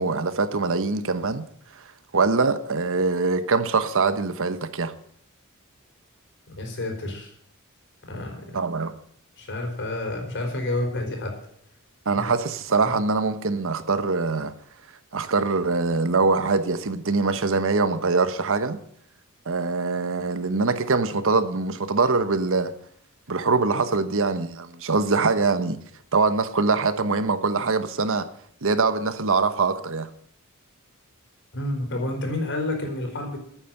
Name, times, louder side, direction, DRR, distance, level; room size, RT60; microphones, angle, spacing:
voice 1, 0.0-1.4 1.7-1.8 2.1-4.9 8.5-8.9 12.1-14.5 15.1-18.8 19.5-22.7 23.3-25.8 26.1-28.3 28.6-30.1, right 4 dB, 65° right, 1.1 m, -23 dB
voice 2, 6.5-7.3 8.1-8.6 9.4-11.3 12.2-12.3 12.8-12.9 31.5-33.4, left 1 dB, 55° left, 4.8 m, -29 dB
11.5 x 9.1 x 7.8 m
head